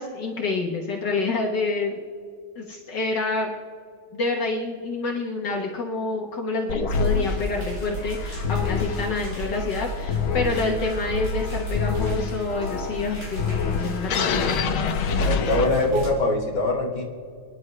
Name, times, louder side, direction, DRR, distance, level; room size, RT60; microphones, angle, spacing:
voice 1, 0.0-2.0 2.6-3.5 4.1-14.5, left 3 dB, 60° left, 1 dB, 1.8 m, -28 dB
sound 1, 6.7-16.1, left 5 dB, 85° left, 1.8 m, -27 dB
sound 2, 6.9-16.1, equal, 35° right, 4.1 m, -33 dB
voice 2, 15.2-17.0, left 2 dB, 20° left, -3 dB, 2.2 m, -23 dB
29.5 x 10.5 x 3.3 m, 2.3 s
omnidirectional pair, 2.2 m